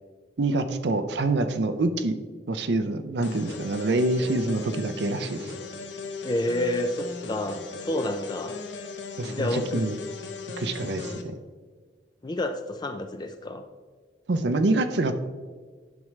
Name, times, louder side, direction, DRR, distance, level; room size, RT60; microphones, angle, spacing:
voice 1, 0.4-2.2 2.5-5.5 9.2-10.0 10.6-11.4 14.3-15.2, right 2 dB, 70° right, 8 dB, 0.6 m, -26 dB
sound 1, 3.2-11.2, left 4 dB, 80° left, 0.9 m, -38 dB
voice 2, 6.2-8.6 9.4-9.8 11.0-11.2 12.2-13.6, left 1 dB, 25° left, 7 dB, 0.4 m, -29 dB
10.5 x 6.1 x 3.2 m, 1.5 s
head